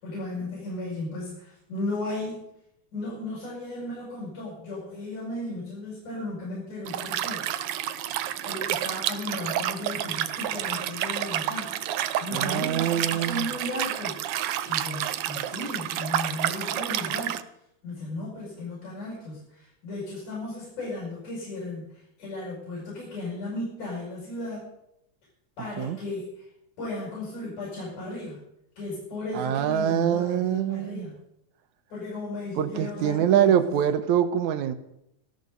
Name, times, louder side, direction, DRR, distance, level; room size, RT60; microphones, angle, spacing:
voice 1, 0.0-2.5 2.9-7.5 8.2-17.4 17.8-24.7 25.6-26.5 26.8-28.4 28.8-31.2 31.9-33.8, left 2 dB, 75° left, -6 dB, 8.5 m, -35 dB
Liquid, 6.9-17.4, right 11 dB, 90° right, 1.2 m, -30 dB
voice 2, 12.3-13.4 25.8-26.0 29.3-31.1 32.6-34.7, right 10 dB, 75° right, 10 dB, 2.5 m, -24 dB
18.5 x 15.5 x 4.1 m, 0.79 s
omnidirectional pair, 3.5 m